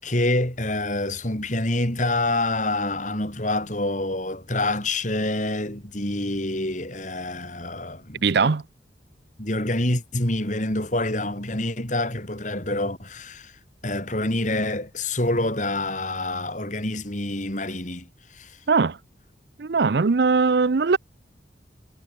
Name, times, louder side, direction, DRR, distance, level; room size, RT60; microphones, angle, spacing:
voice 1, 0.0-8.2 9.4-13.5 13.8-18.6, left 2 dB, 40° left, 4.8 m, -27 dB
voice 2, 8.2-8.6 18.7-19.0 19.6-21.0, right 4 dB, 60° right, 0.5 m, -20 dB
head